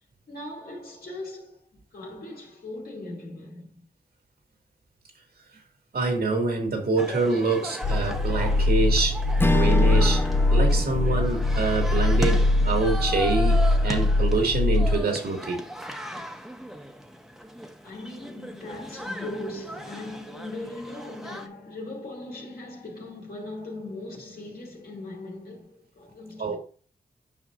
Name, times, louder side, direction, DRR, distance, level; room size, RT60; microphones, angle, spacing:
voice 1, 0.3-3.9 16.2-16.7 17.8-26.6, left 2 dB, 70° left, 2.7 m, -39 dB
voice 2, 5.9-10.2 10.5-15.6 26.4-26.6, right 3 dB, 75° right, 2.2 m, -26 dB
sound 1, 7.0-21.5, equal, ahead, 1.2 m, -37 dB
sound 2, 7.8-15.0, left 2 dB, 50° left, 0.7 m, -22 dB
Strum, 9.4-14.0, left 2 dB, 15° left, 0.4 m, -31 dB
9.0 x 5.5 x 2.6 m
cardioid pair, 55°, 16 cm